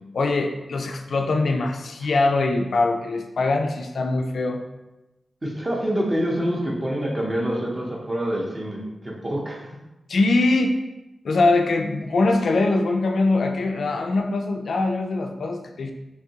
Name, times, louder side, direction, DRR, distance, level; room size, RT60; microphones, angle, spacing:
voice 1, 0.1-4.6 10.1-10.7 11.2-15.9, left 2 dB, 65° left, 3 dB, 0.3 m, -22 dB
voice 2, 5.4-9.6, equal, 20° right, -2 dB, 0.6 m, -26 dB
3.6 x 2.9 x 2.8 m, 1.0 s
wide cardioid pair, 180°, 0 cm